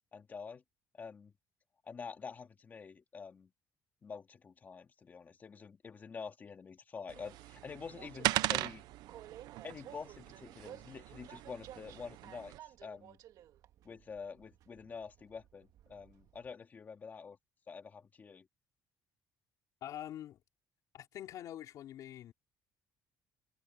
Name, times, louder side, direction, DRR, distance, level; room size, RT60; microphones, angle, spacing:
voice 1, 0.1-0.6 0.9-1.3 1.8-3.5 4.0-8.9 9.6-13.2 13.8-17.4 17.7-18.5, left 5 dB, 25° left, 2.4 m, -47 dB
sound 1, 7.1-12.6, right 15 dB, 80° right, 0.9 m, -39 dB
Train, 7.9-16.5, right 12 dB, 60° right, 1.9 m, -55 dB
voice 2, 19.8-20.4 20.9-22.3, left 12 dB, 55° left, 4.7 m, -45 dB
cardioid pair, 170°, 7 cm